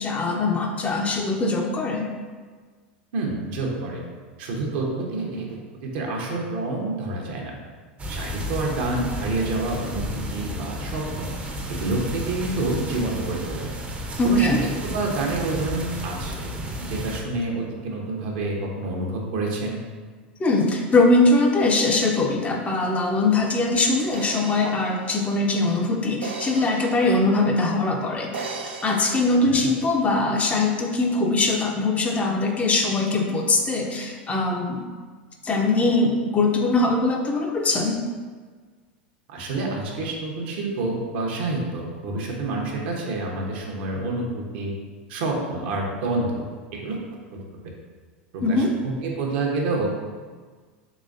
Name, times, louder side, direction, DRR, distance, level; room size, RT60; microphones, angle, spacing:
voice 1, 0.0-2.1 14.2-14.6 20.4-28.5 28.8-34.8 35.4-38.0 48.4-48.8, left 2 dB, 25° left, 1 dB, 0.5 m, -22 dB
voice 2, 3.1-4.0 4.4-7.6 8.1-11.3 11.7-13.7 14.2-16.5 16.9-19.8 29.4-29.7 39.3-44.7 45.1-46.5 46.7-47.0 48.3-49.9, right 2 dB, 65° right, 0 dB, 0.8 m, -28 dB
sound 1, 8.0-17.2, equal, 20° right, 0.5 m, -32 dB
sound 2, 24.1-27.6 28.3-29.6, right 4 dB, 85° right, 0.4 m, -37 dB
3.9 x 3.1 x 2.5 m, 1.5 s
hypercardioid pair, 95°, 6 cm